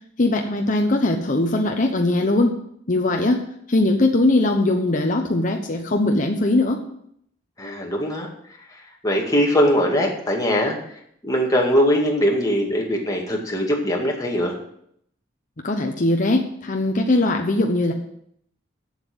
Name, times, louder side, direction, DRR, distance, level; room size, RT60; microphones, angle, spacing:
voice 1, 0.2-2.6 2.9-3.4 3.7-6.8 15.6-17.9, left 2 dB, 45° left, 2 dB, 0.9 m, -20 dB
voice 2, 7.6-8.3 9.0-10.8 11.2-14.6, equal, 20° left, -1 dB, 2.1 m, -21 dB
7.8 x 7.4 x 7.9 m, 0.70 s
head